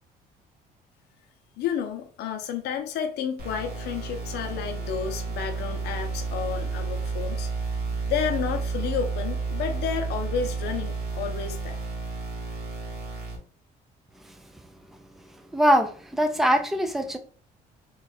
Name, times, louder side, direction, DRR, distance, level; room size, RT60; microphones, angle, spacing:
voice 1, 1.6-7.5 8.1-11.8, left 7 dB, 75° left, 0.7 m, -31 dB
sound 1, 3.4-13.4, right 4 dB, 70° right, 1.5 m, -31 dB
voice 2, 15.5-17.2, equal, ahead, 0.4 m, -22 dB
3.2 x 2.4 x 4.2 m
cardioid pair, 110°, 17 cm